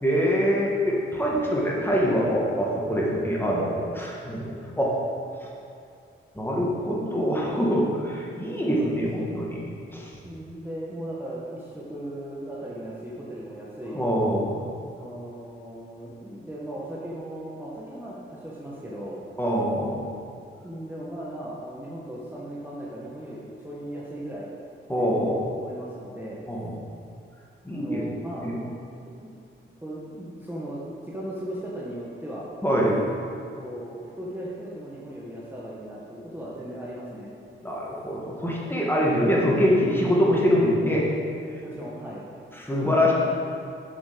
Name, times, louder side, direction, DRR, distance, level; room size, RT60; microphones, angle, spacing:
voice 1, 0.0-5.0 5.4-5.5 6.4-9.7 9.9-10.1 13.9-14.6 19.4-20.0 24.9-25.4 26.5-26.7 27.6-28.0 28.4-28.6 32.6-33.0 37.6-41.0 42.6-43.1, equal, 10° left, -4 dB, 1.9 m, -24 dB
voice 2, 8.6-9.3 10.2-14.0 14.9-19.2 20.6-24.5 24.9-25.1 25.6-26.4 27.7-28.5 29.2-29.3 29.8-32.5 33.5-37.3 41.6-42.2, right 1 dB, 10° right, -7 dB, 1.5 m, -37 dB
7.4 x 7.2 x 5.2 m, 2.5 s
cardioid pair, 80°, 21 cm